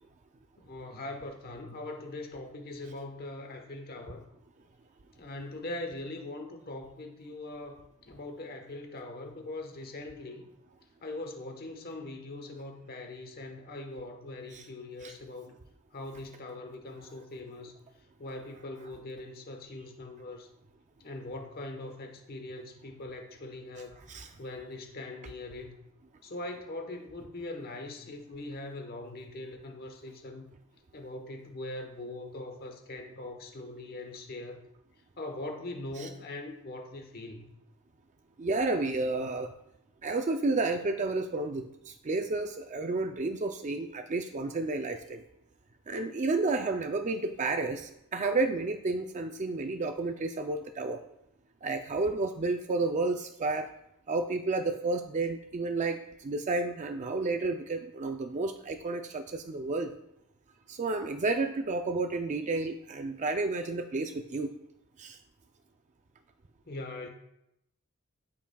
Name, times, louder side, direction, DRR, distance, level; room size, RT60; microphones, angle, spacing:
voice 1, 0.6-4.2 5.2-10.5 11.0-15.5 15.9-17.7 18.2-20.5 21.0-24.0 24.4-25.8 26.2-30.5 30.9-34.6 35.2-37.5 66.7-67.1, left 2 dB, 45° left, 4 dB, 1.1 m, -41 dB
voice 2, 38.4-39.5 40.0-45.2 45.9-51.0 51.6-53.7 54.1-59.9 60.7-64.5 65.0-65.2, right 3 dB, 35° right, 6 dB, 0.4 m, -31 dB
13.0 x 5.7 x 2.3 m, 0.81 s
head